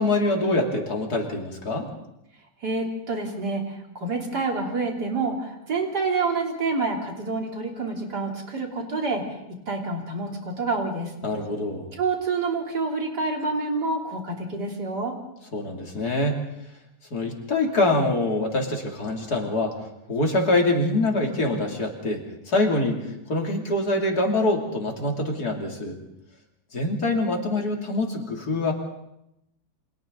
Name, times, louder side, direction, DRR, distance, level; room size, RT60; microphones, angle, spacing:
voice 1, 0.0-1.9 11.2-11.9 15.5-16.4 17.1-19.8 20.1-26.0 26.7-28.7, left 2 dB, 65° left, 1 dB, 3.5 m, -25 dB
voice 2, 2.6-9.4 9.7-11.1 12.0-15.1, right 3 dB, 70° right, 1 dB, 4.0 m, -28 dB
29.5 x 25.5 x 4.0 m, 0.84 s
omnidirectional pair, 1.8 m